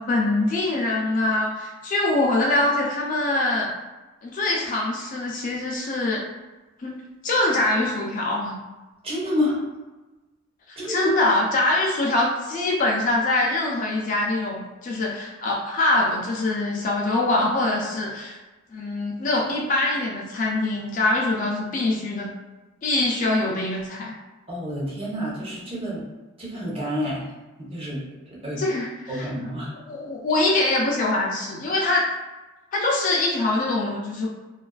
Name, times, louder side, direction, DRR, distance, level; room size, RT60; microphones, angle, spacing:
voice 1, 0.0-3.7 4.2-6.2 6.8-7.0 7.2-8.5 10.7-18.4 18.7-22.3 22.8-24.1 28.6-29.3 29.9-32.1 32.7-34.3, left 2 dB, 40° left, -2 dB, 0.3 m, -23 dB
voice 2, 9.0-9.6 10.8-11.1 24.5-26.0 26.4-27.3 27.6-28.0 28.3-28.6 29.1-29.7, equal, 25° right, -6 dB, 0.7 m, -28 dB
2.3 x 2.3 x 2.2 m, 1.2 s
head